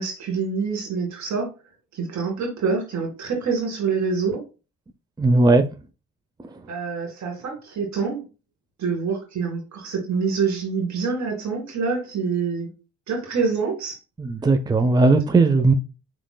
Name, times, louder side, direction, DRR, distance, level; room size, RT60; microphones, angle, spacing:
voice 1, 0.0-1.5 1.9-4.4 6.7-8.2 8.8-12.7 13.1-14.0, right 5 dB, 65° right, 2.4 m, -26 dB
voice 2, 5.2-5.6 14.2-15.7, right 3 dB, 15° right, 0.6 m, -17 dB
7.3 x 3.2 x 2.2 m
cardioid pair, 90°, 30 cm